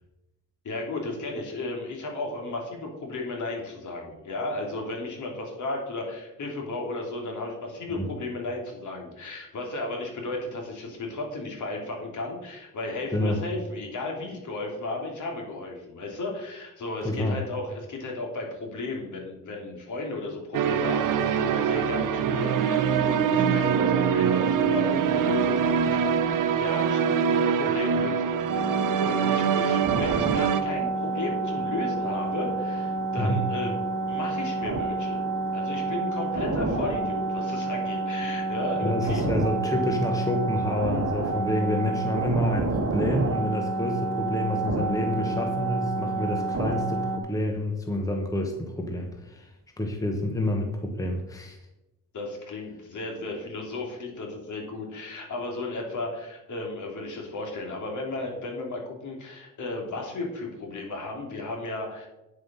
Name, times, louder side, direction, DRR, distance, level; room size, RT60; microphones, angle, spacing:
voice 1, 0.6-33.8 34.1-35.2 35.5-39.2 52.1-62.1, left 2 dB, 60° left, 0 dB, 3.0 m, -34 dB
voice 2, 17.0-17.4 33.2-33.4 38.8-51.6, left 1 dB, 10° left, 3 dB, 1.1 m, -28 dB
sound 1, 20.5-30.6, right 7 dB, 70° right, 0.8 m, -24 dB
sound 2, 28.5-47.2, right 3 dB, 45° right, 1.5 m, -29 dB
9.1 x 7.5 x 5.5 m, 0.96 s
wide cardioid pair, 160°, 33 cm